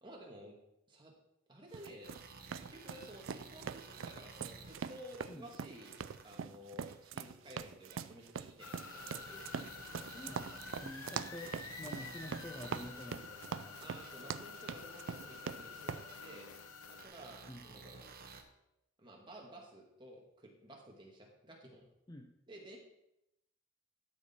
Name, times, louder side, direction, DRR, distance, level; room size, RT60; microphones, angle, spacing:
voice 1, 0.0-0.6 0.9-1.1 1.5-2.1 2.5-10.1 11.1-11.2 13.8-16.5 16.8-18.0 19.0-21.8 22.5-22.8, equal, 20° right, -1 dB, 1.8 m, -54 dB
sound 1, 1.7-16.1, right 6 dB, 65° right, 0.4 m, -43 dB
sound 2, 2.0-5.2 5.7-6.2 6.9-7.0 7.9-8.0 8.8-13.1 14.0-14.1 15.1-15.2 16.1-16.2 17.0-18.4, right 4 dB, 45° right, 1.1 m, -53 dB
sound 3, 8.6-17.0, left 5 dB, 85° left, 1.0 m, -49 dB
voice 2, 10.1-11.5 11.8-13.9 17.5-17.6 22.1-22.3, left 1 dB, 20° left, 3 dB, 0.6 m, -49 dB
12.5 x 6.3 x 4.3 m, 0.85 s
head